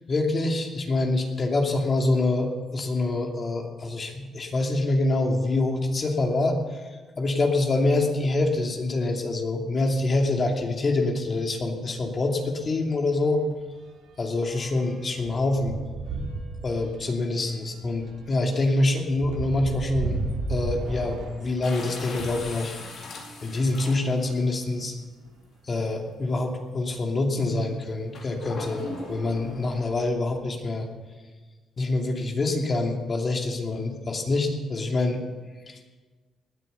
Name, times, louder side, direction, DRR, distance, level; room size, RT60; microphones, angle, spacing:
voice 1, 0.1-6.6 7.2-13.4 14.2-15.8 16.6-20.2 20.5-22.8 23.4-24.9 25.7-30.8 31.8-35.2 35.7-35.8, left 2 dB, 40° left, 2 dB, 2.7 m, -25 dB
sound 1, 12.1-12.3 12.6-12.8 13.1-22.5 23.3-24.6 25.3-25.4 25.6-25.7 27.4-27.5 28.2-28.5 28.8-30.1, right 3 dB, 90° right, 4.1 m, -36 dB
sound 2, 21.6-24.4 25.2-25.3 28.1-29.7, left 2 dB, 65° left, 4.4 m, -39 dB
19.0 x 9.5 x 6.9 m, 1.4 s
cardioid pair, 90°, 0 cm